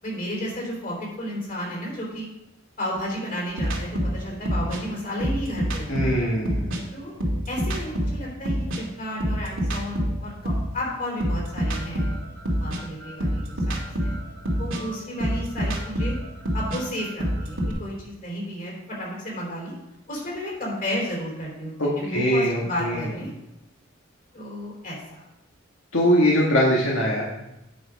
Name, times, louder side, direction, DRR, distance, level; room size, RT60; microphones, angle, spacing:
voice 1, 0.0-2.3 2.8-5.9 6.9-7.1 7.5-12.1 12.6-14.1 14.6-16.1 16.5-19.7 20.1-23.3 24.3-25.2, equal, 45° left, -3 dB, 3.9 m, -32 dB
sound 1, 3.6-6.8 7.2-10.7 11.2-17.7, equal, 85° right, 2.1 m, -27 dB
voice 2, 5.9-6.7 21.8-23.0 25.9-27.3, equal, 80° left, -4 dB, 1.7 m, -22 dB
9.3 x 5.8 x 5.2 m, 0.90 s
head